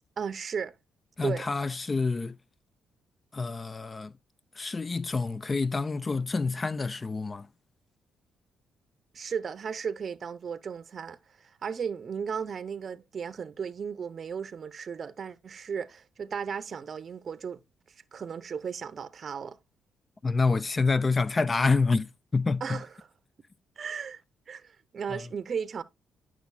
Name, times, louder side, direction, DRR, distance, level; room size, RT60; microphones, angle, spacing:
voice 1, 0.2-0.7 1.2-1.5 9.1-17.6 18.1-19.6 22.6-23.1 23.8-24.2 24.5-25.8, right 6 dB, 45° right, 0.6 m, -35 dB
voice 2, 1.2-2.4 3.3-4.1 4.6-7.5 20.2-22.8 25.1-25.3, left 4 dB, 30° left, 0.3 m, -27 dB
9.4 x 6.0 x 2.2 m
cardioid pair, 90°, 0 cm